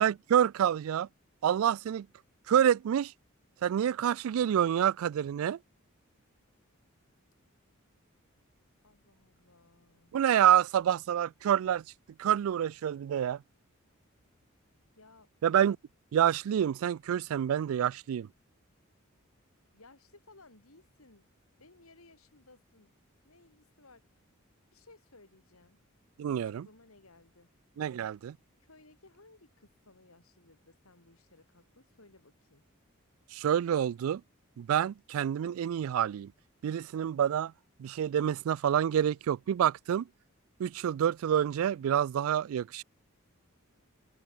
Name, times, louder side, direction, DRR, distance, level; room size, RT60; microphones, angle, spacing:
voice 1, 0.0-1.1 1.4-2.1 2.5-3.1 3.6-5.6 10.1-11.8 12.2-13.4 15.4-15.8 16.1-18.3 26.2-26.7 27.8-28.4 33.3-34.2 34.6-36.3 36.6-37.5 37.8-40.1 40.6-42.8, right 9 dB, 70° right, 0.3 m, -27 dB
voice 2, 8.8-10.1 15.0-15.3 19.7-21.3 21.6-22.9 23.2-24.0 24.7-25.8 26.3-27.5 28.6-32.7, left 2 dB, 80° left, 3.9 m, -59 dB
head